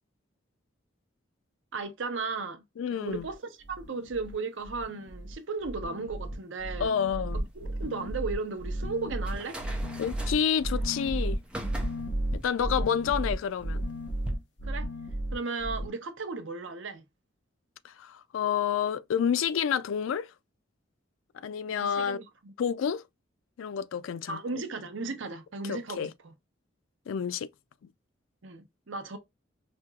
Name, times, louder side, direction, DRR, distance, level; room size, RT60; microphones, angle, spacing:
voice 1, 1.7-2.6 2.9-3.4 3.7-6.9 7.6-9.6 14.6-14.9 15.3-17.0 21.7-22.5 24.3-26.3 28.4-29.2, right 4 dB, 75° right, 0.7 m, -35 dB
voice 2, 2.8-3.3 6.8-7.4 10.0-11.4 12.3-13.8 17.8-20.3 21.4-22.2 22.6-23.0 23.6-24.6 25.6-26.1 27.1-27.5, left 7 dB, 85° left, 0.3 m, -29 dB
sound 1, 3.1-3.3 3.6-4.3 4.6-5.3 5.6-15.9, right 1 dB, 60° left, 0.9 m, -33 dB
sound 2, 7.3-14.3, right 1 dB, 5° right, 0.6 m, -41 dB
4.3 x 2.8 x 2.3 m
head